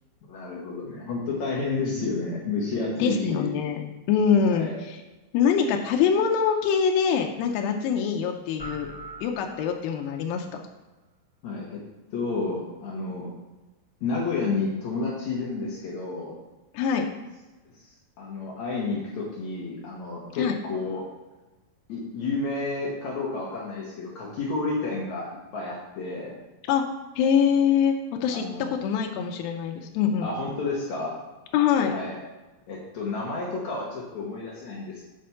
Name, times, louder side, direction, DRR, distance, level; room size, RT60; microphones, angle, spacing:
voice 1, 0.3-3.6 4.4-4.8 11.4-11.8 12.1-13.3 14.0-16.4 18.2-21.0 21.9-26.4 28.3-28.7 30.2-31.2 31.9-32.2 32.7-35.0, left 3 dB, 65° left, -3 dB, 2.1 m, -30 dB
voice 2, 3.0-5.0 5.3-8.9 9.2-10.5 16.7-17.1 20.4-20.6 26.7-26.8 27.2-30.3 31.5-31.9, left 7 dB, 90° left, 3 dB, 2.5 m, -24 dB
sound 1, 8.6-10.2, right 2 dB, 30° left, 0.6 m, -42 dB
7.7 x 4.2 x 5.6 m, 1.1 s
omnidirectional pair, 4.2 m